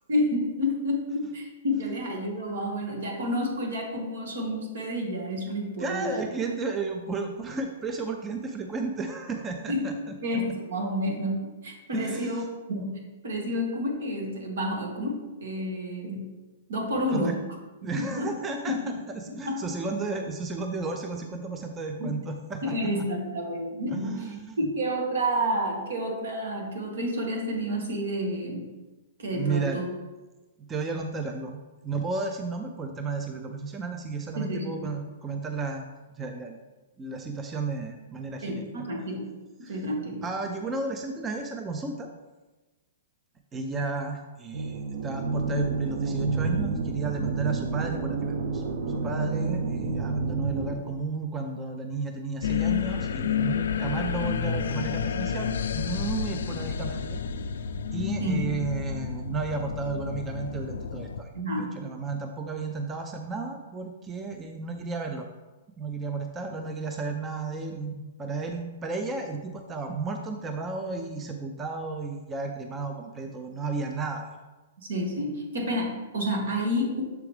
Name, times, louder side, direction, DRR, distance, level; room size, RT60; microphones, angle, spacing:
voice 1, 0.1-6.2 9.7-9.9 10.2-12.4 12.7-12.9 13.2-16.2 16.7-17.4 17.9-18.3 18.7-18.9 19.5-19.7 22.0-22.1 22.6-24.1 24.6-28.7 29.2-29.9 34.3-34.7 38.4-39.2 39.7-40.2 58.2-58.4 61.3-61.7 74.8-77.0, equal, 75° right, 1 dB, 1.6 m, -29 dB
voice 2, 5.8-9.9 11.9-12.5 17.1-17.3 17.8-18.8 19.1-22.8 23.9-24.7 29.3-29.8 30.7-35.8 36.1-36.6 37.0-38.7 39.6-39.8 40.2-42.1 43.5-48.2 48.5-48.6 48.9-57.2 57.9-65.3 65.8-74.3, right 4 dB, 15° right, 4 dB, 0.4 m, -33 dB
sound 1, 44.5-50.8, right 4 dB, 50° right, 0.7 m, -29 dB
sound 2, 52.4-61.2, left 7 dB, 80° left, 0.4 m, -30 dB
6.9 x 4.7 x 3.3 m, 1.2 s
hypercardioid pair, 150°, 0 cm